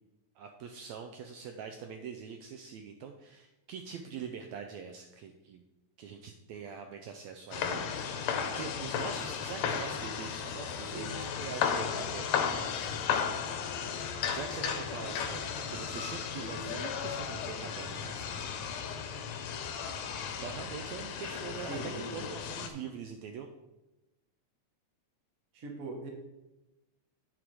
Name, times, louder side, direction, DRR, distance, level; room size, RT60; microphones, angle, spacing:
voice 1, 0.4-5.6 6.0-12.9 14.3-18.5 20.4-23.5, right 6 dB, 85° right, 5 dB, 1.6 m, -44 dB
sound 1, 7.5-22.7, left 7 dB, 75° left, 1.8 m, -35 dB
voice 2, 10.8-11.1 16.4-16.8 21.7-22.3 25.5-26.1, right 2 dB, 60° right, 2 dB, 0.8 m, -41 dB
9.9 x 4.9 x 4.7 m, 1.0 s
omnidirectional pair, 3.7 m